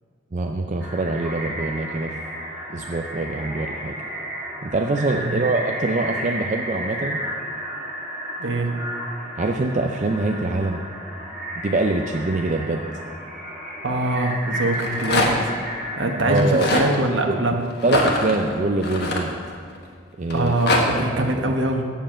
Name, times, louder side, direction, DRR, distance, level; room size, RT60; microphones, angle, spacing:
voice 1, 0.3-2.1 2.7-4.0 4.6-7.2 9.4-10.8 11.6-12.8 16.3-16.7 17.3-17.4 17.8-19.3 20.2-20.5 20.9-21.3, right 2 dB, 35° right, 3 dB, 0.4 m, -24 dB
sound 1, 0.8-16.4, equal, 5° right, 2.1 m, -33 dB
voice 2, 8.4-8.7 13.8-15.5 16.0-17.6 20.3-21.8, right 2 dB, 65° right, 3 dB, 1.1 m, -23 dB
Rattle, 14.6-15.5 16.3-16.9 17.8-19.8 20.3-20.8, left 2 dB, 55° left, 1.3 m, -23 dB
7.5 x 7.0 x 7.4 m, 2.3 s
head